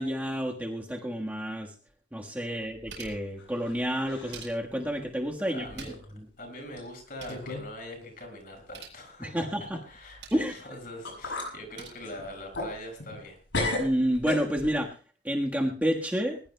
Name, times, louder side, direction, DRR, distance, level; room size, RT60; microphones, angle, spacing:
voice 1, 0.0-1.7 2.1-5.9 9.2-9.8 10.3-10.5 13.8-14.9 15.2-16.4, equal, 10° right, -1 dB, 1.4 m, -29 dB
sound 1, 1.9-2.0 2.4-3.3 4.0-4.9 5.5-6.2 6.5-6.6 6.9-7.5 8.5-9.0 9.9-10.5 11.5-11.9, right 5 dB, 70° right, 7.5 m, -48 dB
sound 2, 2.9-3.8 4.0-4.5 5.0-5.1 5.9-6.0 6.8-6.9 7.3-7.7 8.0-8.1 10.6-10.7 11.0-11.5 12.0-13.3 13.5-14.8, left 2 dB, 85° left, 7.7 m, -34 dB
voice 2, 5.4-5.9 6.4-13.4, left 1 dB, 50° left, 3 dB, 5.9 m, -43 dB
21.0 x 20.5 x 2.2 m, 0.37 s
head